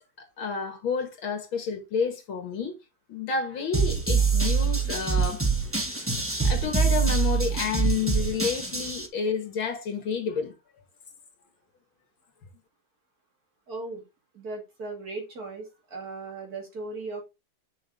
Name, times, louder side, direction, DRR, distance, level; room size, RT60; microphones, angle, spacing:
voice 1, 0.2-2.8 3.1-5.4 6.4-10.5, left 6 dB, 85° left, 2.7 m, -30 dB
sound 1, 3.7-9.1, right 5 dB, 10° right, 0.8 m, -25 dB
voice 2, 13.7-14.0 14.3-17.2, right 3 dB, 50° right, 3.0 m, -37 dB
6.4 x 6.2 x 3.8 m
omnidirectional pair, 2.2 m